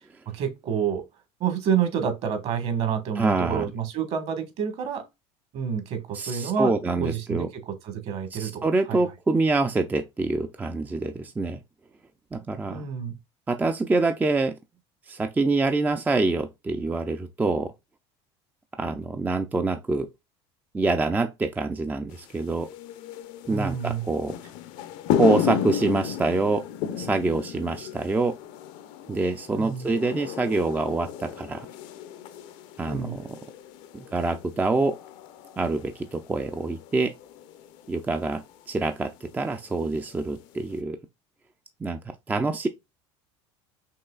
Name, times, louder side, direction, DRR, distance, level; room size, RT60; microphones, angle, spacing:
voice 1, 0.3-1.0 1.4-5.0 5.5-6.7 7.0-9.0 12.7-13.2 23.5-24.0 29.5-29.9 32.8-33.2, right 7 dB, 55° right, 1.5 m, -28 dB
voice 2, 3.2-3.7 6.1-7.5 8.3-11.6 12.3-12.9 13.5-14.5 15.1-17.7 18.8-20.1 20.7-22.7 23.5-24.3 25.2-26.7 27.0-28.4 29.1-31.7 32.8-33.2 33.9-35.0 35.6-37.1 37.9-41.0 41.8-42.0 42.3-42.7, right 3 dB, 10° right, 0.4 m, -26 dB
sound 1, 22.1-40.8, left 9 dB, 65° left, 0.7 m, -34 dB
5.5 x 3.0 x 2.3 m
supercardioid pair, 120°, 13 cm